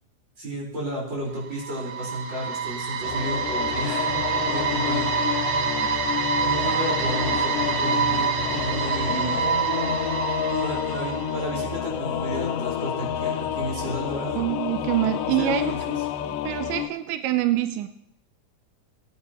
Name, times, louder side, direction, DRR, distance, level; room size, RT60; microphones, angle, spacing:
voice 1, 0.4-4.1 4.4-5.1 5.5-5.6 6.4-9.4 10.5-14.4 15.4-16.0, right 1 dB, 35° right, -4 dB, 5.1 m, -32 dB
sound 1, 1.4-11.4, right 6 dB, 70° right, 2.4 m, -26 dB
Singing / Musical instrument, 3.0-16.9, left 10 dB, 90° left, 2.3 m, -29 dB
voice 2, 14.4-15.7 16.2-17.9, right 13 dB, 90° right, 9 dB, 2.3 m, -25 dB
20.5 x 9.6 x 3.0 m, 0.74 s
omnidirectional pair, 3.7 m